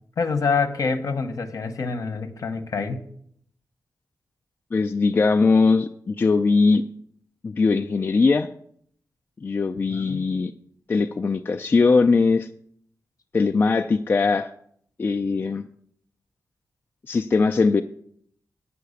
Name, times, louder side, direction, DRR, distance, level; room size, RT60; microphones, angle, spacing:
voice 1, 0.2-3.0 9.9-10.3, left 4 dB, 60° left, 8 dB, 1.0 m, -26 dB
voice 2, 4.7-6.8 7.4-8.5 9.4-10.5 10.9-12.5 13.3-14.5 15.0-15.7 17.1-17.8, left 4 dB, 35° left, 5 dB, 0.3 m, -20 dB
9.4 x 5.7 x 8.2 m, 0.66 s
wide cardioid pair, 165°, 6 cm